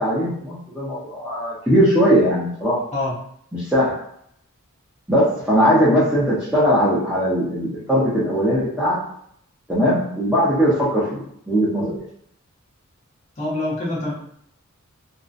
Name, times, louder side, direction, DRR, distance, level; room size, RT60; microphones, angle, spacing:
voice 1, 0.0-2.8 3.5-4.0 5.1-9.0 9.7-12.0, equal, 5° right, -10 dB, 0.5 m, -19 dB
voice 2, 13.4-14.1, left 2 dB, 30° left, -6 dB, 0.7 m, -25 dB
2.5 x 2.0 x 2.4 m, 0.68 s
head